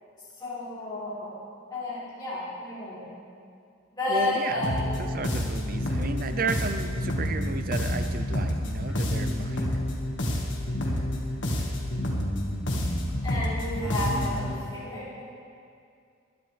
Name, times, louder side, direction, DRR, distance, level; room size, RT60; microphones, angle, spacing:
voice 1, 0.4-1.4 1.7-3.1 4.0-5.0 13.2-15.2, left 2 dB, 20° left, -11 dB, 3.6 m, -31 dB
voice 2, 4.1-9.8, right 3 dB, 40° right, 8 dB, 0.6 m, -33 dB
sound 1, 4.6-14.5, left 1 dB, 55° left, 1.8 m, -29 dB
21.5 x 11.0 x 3.4 m, 2.3 s
head